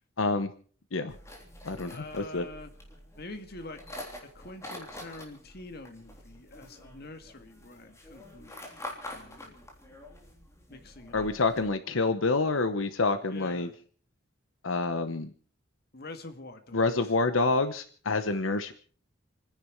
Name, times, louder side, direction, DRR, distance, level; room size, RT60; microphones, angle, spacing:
voice 1, 0.2-0.5 0.9-1.2 1.6-2.5 11.1-13.7 14.6-15.3 16.7-18.7, left 3 dB, 85° left, 10 dB, 1.0 m, -27 dB
sound 1, 1.1-11.7, left 1 dB, 15° left, 3.5 m, -46 dB
voice 2, 1.9-2.7 3.2-3.8 4.2-8.7 9.1-9.5 10.7-11.3 13.2-13.8 15.9-16.9 18.3-18.4, left 2 dB, 55° left, 7 dB, 1.8 m, -45 dB
29.0 x 10.5 x 4.5 m, 0.42 s
head